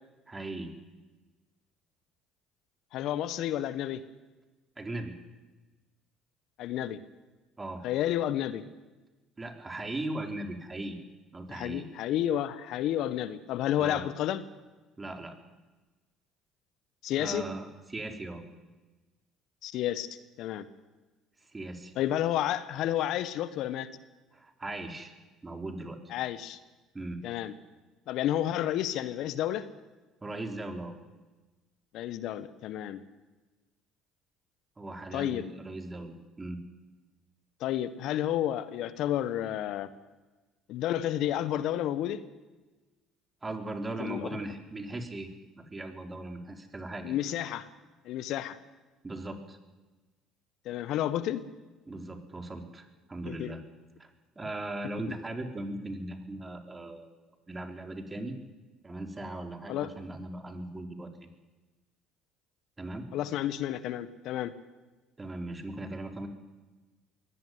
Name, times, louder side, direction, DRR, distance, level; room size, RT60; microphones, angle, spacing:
voice 1, 0.3-0.7 4.8-5.2 7.6-7.8 9.4-11.0 11.3-11.8 13.8-14.0 15.0-15.4 17.2-18.4 21.5-21.9 24.3-25.1 25.4-26.0 26.9-27.2 30.2-30.9 34.8-36.6 43.4-45.3 45.6-47.1 49.0-49.6 51.9-53.6 54.0-54.1 54.4-57.1 57.5-58.3 58.8-61.1 62.8-63.1 65.2-66.3, right 2 dB, 20° right, 5 dB, 4.2 m, -38 dB
voice 2, 2.9-4.0 6.6-7.0 7.8-8.6 11.5-14.4 17.0-17.5 19.6-20.1 20.4-20.7 22.0-23.9 26.1-26.6 27.2-27.5 28.1-29.7 31.9-33.0 35.1-35.5 37.6-39.9 40.7-42.2 44.0-44.4 47.0-47.7 48.0-48.6 50.6-51.4 53.2-53.5 59.7-59.9 63.1-64.5, left 12 dB, 65° left, 14 dB, 1.3 m, -31 dB
22.5 x 17.5 x 9.6 m, 1.2 s
hypercardioid pair, 65°, 0 cm